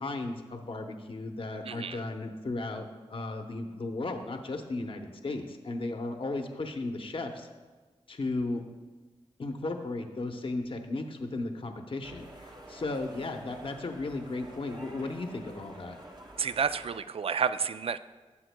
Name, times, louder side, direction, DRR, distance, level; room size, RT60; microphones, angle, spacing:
voice 1, 0.0-7.5 8.1-8.6 9.4-15.9, left 2 dB, 50° left, 4 dB, 0.8 m, -35 dB
voice 2, 1.6-2.0 16.4-18.0, right 6 dB, 55° right, 13 dB, 0.4 m, -30 dB
sound 1, 12.0-17.0, right 1 dB, 40° right, 1.3 m, -49 dB
14.0 x 7.5 x 2.2 m, 1.3 s
cardioid pair, 45°, 11 cm